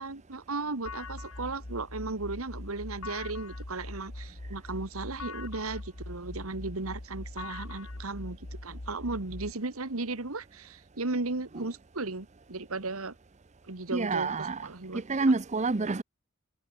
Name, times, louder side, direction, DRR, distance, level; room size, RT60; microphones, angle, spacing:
voice 1, 0.0-13.1 13.7-15.3, right 3 dB, 80° right, 1.8 m, -36 dB
sound 1, 0.9-9.5, left 2 dB, 80° left, 2.3 m, -42 dB
voice 2, 13.9-14.7 14.9-16.0, right 3 dB, 35° right, 0.6 m, -28 dB
head